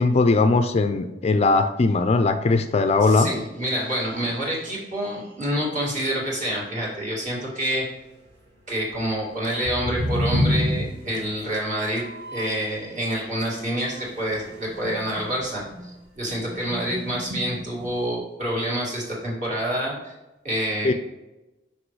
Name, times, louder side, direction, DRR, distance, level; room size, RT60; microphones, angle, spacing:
voice 1, 0.0-3.3 20.8-20.9, left 3 dB, 35° left, 9 dB, 0.4 m, -19 dB
voice 2, 3.0-7.8 8.7-12.0 12.3-20.1 20.4-20.9, equal, 45° right, -4 dB, 2.2 m, -27 dB
sound 1, 9.4-12.8 13.1-15.4 15.7-15.9 16.2-18.0, left 1 dB, 60° right, 1.6 m, -29 dB
6.1 x 5.3 x 3.2 m, 1.0 s
head